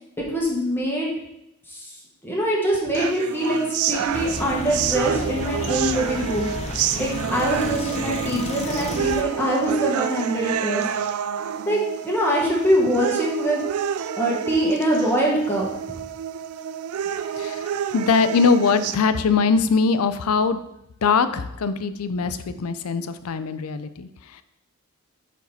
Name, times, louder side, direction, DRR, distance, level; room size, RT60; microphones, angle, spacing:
voice 1, 0.3-1.1 1.7-1.9 2.2-6.5 7.0-10.9 11.7-13.6 14.1-15.7, right 1 dB, 10° left, -4 dB, 1.2 m, -23 dB
sound 1, 2.9-19.0, right 8 dB, 85° right, 0.3 m, -28 dB
sound 2, 4.1-9.2, left 3 dB, 30° left, 0.4 m, -33 dB
voice 2, 17.3-20.6 21.0-24.4, left 5 dB, 85° left, 11 dB, 0.5 m, -22 dB
4.8 x 4.6 x 5.5 m, 0.84 s
head